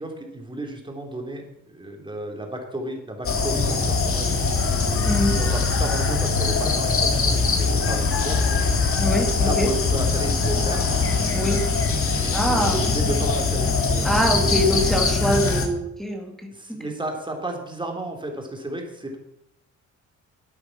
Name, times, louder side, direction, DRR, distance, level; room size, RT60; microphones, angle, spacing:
voice 1, 0.0-4.4 5.3-8.6 9.4-10.8 12.2-14.1 16.5-19.2, right 1 dB, 15° right, 2 dB, 3.6 m, -33 dB
sound 1, 3.2-15.7, left 4 dB, 45° left, 2.3 m, -22 dB
voice 2, 9.0-9.7 11.3-11.6 12.3-12.8 14.0-16.5, equal, ahead, 1 dB, 2.6 m, -24 dB
12.5 x 8.6 x 6.1 m, 0.78 s
cardioid pair, 90°, 30 cm